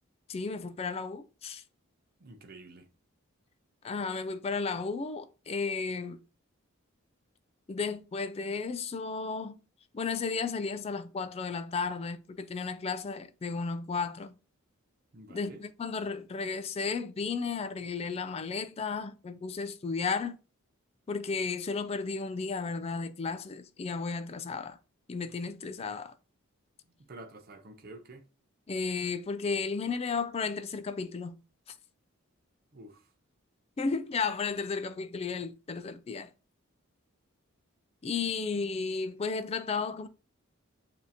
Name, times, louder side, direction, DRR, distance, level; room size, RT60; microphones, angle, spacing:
voice 1, 0.3-1.6 3.8-6.2 7.7-9.6 9.9-14.4 15.3-20.4 21.1-24.8 25.1-26.1 28.7-31.4 33.8-36.3 38.0-40.1, left 4 dB, 30° left, 0.3 m, -33 dB
voice 2, 2.2-2.8 15.1-15.6 27.1-28.2 32.7-33.0, right 2 dB, 45° right, 0.6 m, -48 dB
7.1 x 2.7 x 2.8 m
head